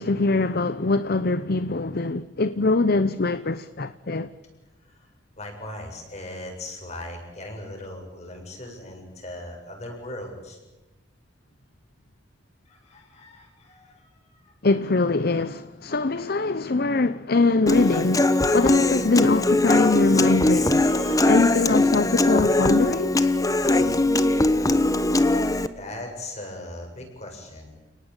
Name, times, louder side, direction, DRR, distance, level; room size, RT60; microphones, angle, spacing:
voice 1, 0.0-4.3 14.6-20.8 21.3-23.3, left 3 dB, 55° left, 0.8 m, -23 dB
voice 2, 5.4-10.6 12.7-14.5 20.6-21.3 21.7-21.8 23.6-23.9 25.8-27.7, left 1 dB, 35° left, 7.6 m, -39 dB
Human voice / Acoustic guitar, 17.7-25.7, left 2 dB, 20° left, 1.1 m, -21 dB
29.5 x 19.0 x 8.9 m
head